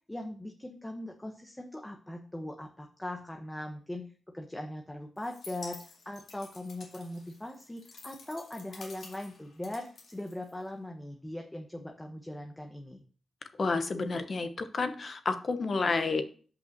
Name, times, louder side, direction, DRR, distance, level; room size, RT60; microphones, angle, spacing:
voice 1, 0.1-13.0, left 1 dB, 10° left, 3 dB, 1.0 m, -40 dB
sound 1, 5.2-10.9, left 4 dB, 75° left, 2.1 m, -51 dB
voice 2, 13.6-16.2, left 4 dB, 50° left, 9 dB, 1.0 m, -30 dB
5.6 x 5.5 x 6.5 m, 0.43 s
cardioid pair, 75°, 0 cm